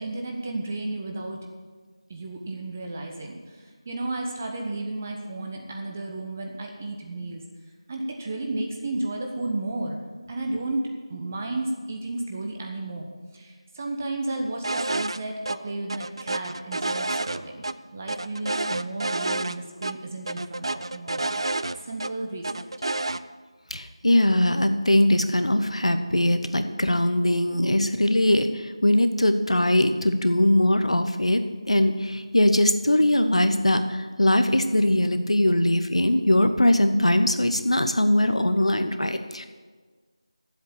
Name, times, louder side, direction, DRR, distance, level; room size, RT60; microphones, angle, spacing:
voice 1, 0.0-1.4 2.1-7.4 7.9-10.0 10.3-13.1 13.3-17.6 17.9-21.6 21.8-22.6, right 2 dB, 25° right, 2 dB, 1.0 m, -33 dB
sound 1, 14.6-15.2 15.4-15.6 15.9-17.7 18.1-19.6 19.8-19.9 20.3-22.1 22.4-23.2, right 2 dB, 55° right, 0.4 m, -29 dB
voice 2, 23.7-31.4 31.7-39.4, left 1 dB, 80° left, 8 dB, 1.0 m, -21 dB
9.9 x 7.9 x 8.5 m, 1.4 s
figure-of-eight pair, 170°, 3 cm